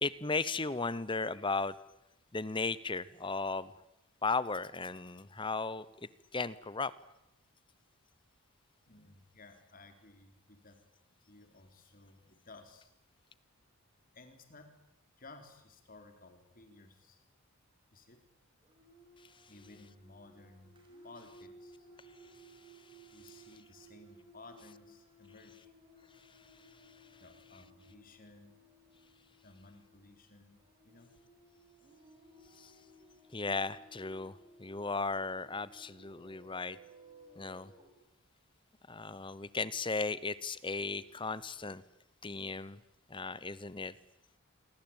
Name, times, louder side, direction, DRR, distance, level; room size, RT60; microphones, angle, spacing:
voice 1, 0.0-1.8 2.3-3.7 4.2-6.9 19.2-19.3 22.3-22.4 22.8-22.9 26.2-27.2 32.6-32.7 33.3-36.8 37.4-37.7 38.9-41.8 42.2-42.8 43.1-43.9, left 3 dB, 20° left, 18 dB, 0.9 m, -36 dB
voice 2, 8.9-10.8 11.3-12.9 14.1-14.7 15.2-17.2 17.9-18.2 19.5-20.7 21.0-21.9 23.1-25.7 27.2-28.6 29.4-31.1, left 2 dB, 40° left, 6 dB, 4.0 m, -56 dB
sound 1, 18.6-37.9, right 1 dB, 25° right, 5.5 m, -59 dB
27.5 x 23.0 x 9.0 m, 0.85 s
head